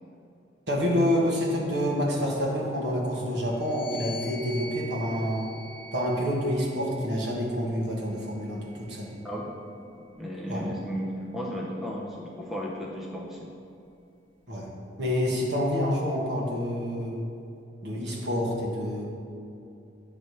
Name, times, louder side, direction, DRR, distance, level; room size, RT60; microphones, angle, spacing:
voice 1, 0.7-5.5 5.9-9.2 10.5-10.6 14.5-14.7 15.0-17.2 17.8-19.0, equal, 65° right, -3 dB, 1.4 m, -28 dB
sound 1, 3.5-7.1 8.0-9.6, left 1 dB, 80° left, 0.7 m, -45 dB
voice 2, 10.2-13.5, equal, ahead, -3 dB, 0.5 m, -34 dB
8.6 x 3.2 x 5.5 m, 2.7 s
head